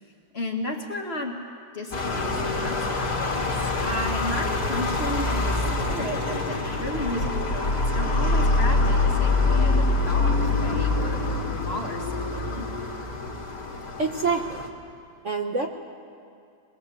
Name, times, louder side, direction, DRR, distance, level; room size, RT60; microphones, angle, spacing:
voice 1, 0.3-1.4 1.7-12.7, left 1 dB, 35° left, 1 dB, 2.0 m, -34 dB
sound 1, 1.9-14.7, left 3 dB, 55° left, 2.6 m, -25 dB
voice 2, 14.0-14.6 15.2-15.7, right 4 dB, 45° right, 2 dB, 1.2 m, -26 dB
22.5 x 21.5 x 7.8 m, 2.3 s
omnidirectional pair, 2.0 m